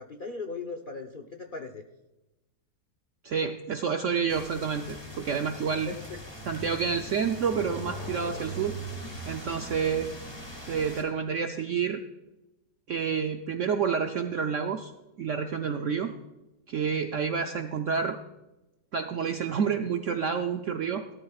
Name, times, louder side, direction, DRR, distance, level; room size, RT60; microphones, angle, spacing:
voice 1, 0.0-1.8 5.9-6.2 16.0-16.2, left 4 dB, 80° left, 4 dB, 0.4 m, -38 dB
voice 2, 3.2-6.0 6.4-8.8 9.2-10.1 10.7-12.0 12.9-14.9 15.2-16.1 16.7-18.2 18.9-21.0, right 6 dB, 75° right, 5 dB, 0.7 m, -29 dB
sound 1, 4.3-11.0, equal, 15° left, 1.7 m, -40 dB
18.0 x 12.5 x 2.3 m, 1.0 s
omnidirectional pair, 2.0 m